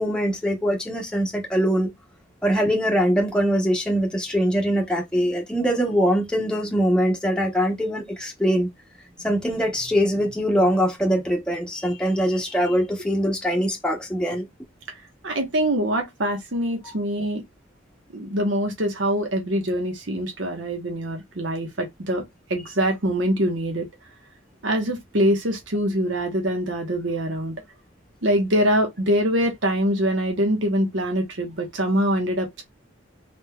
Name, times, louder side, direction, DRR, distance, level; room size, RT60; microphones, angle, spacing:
voice 1, 0.0-1.9 2.4-8.7 9.2-14.5 16.8-16.9, equal, 5° left, 0.8 m, -22 dB
voice 2, 15.2-17.4 18.1-22.2 22.5-23.9 24.6-27.5 28.2-32.6, equal, 70° right, 1.1 m, -24 dB
3.9 x 3.3 x 2.3 m
head